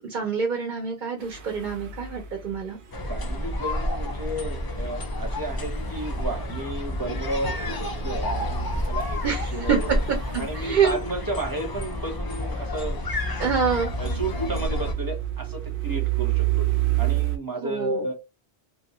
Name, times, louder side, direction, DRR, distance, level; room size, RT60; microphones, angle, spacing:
voice 1, 0.1-2.8 9.2-10.9 13.4-13.9 17.6-18.1, right 6 dB, 55° right, 2 dB, 0.7 m, -26 dB
sound 1, 1.2-17.4, right 11 dB, 90° right, 1.0 m, -32 dB
sound 2, 2.9-14.9, left 1 dB, 40° left, 0.3 m, -30 dB
voice 2, 3.1-9.9 10.4-13.0 14.0-18.1, right 2 dB, 20° right, 2 dB, 0.8 m, -33 dB
2.6 x 2.3 x 2.9 m, 0.23 s
omnidirectional pair, 1.1 m